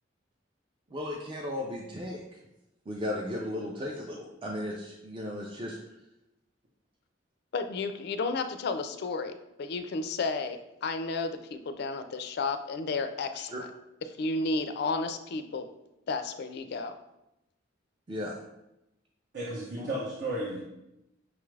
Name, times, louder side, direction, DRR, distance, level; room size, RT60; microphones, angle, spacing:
voice 1, 0.9-2.2 2.9-5.8 13.3-13.6 18.1-18.4 19.8-19.9, left 1 dB, 25° right, -2 dB, 0.4 m, -35 dB
voice 2, 7.5-13.7 14.2-15.7 16.1-16.9, left 3 dB, 55° left, 9 dB, 0.3 m, -32 dB
voice 3, 19.3-20.6, right 1 dB, 60° right, -6 dB, 0.8 m, -33 dB
5.8 x 2.4 x 3.2 m, 0.89 s
head